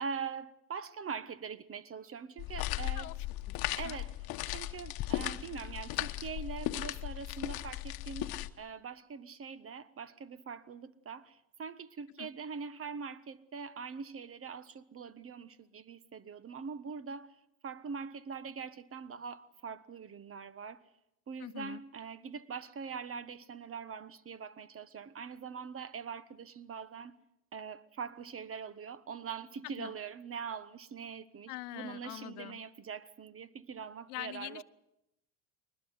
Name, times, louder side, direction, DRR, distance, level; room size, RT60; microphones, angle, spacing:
voice 1, 0.0-3.1 3.7-4.1 4.5-17.4 17.6-20.8 21.3-27.2 27.5-34.6, right 6 dB, 30° right, 1.2 m, -43 dB
sound 1, 2.4-8.5, left 16 dB, 55° left, 1.2 m, -37 dB
voice 2, 2.9-4.0 12.2-12.3 21.4-21.8 29.6-30.0 31.5-32.6 34.1-34.6, left 20 dB, 80° left, 0.8 m, -44 dB
22.5 x 20.5 x 8.0 m
hypercardioid pair, 85°, 44 cm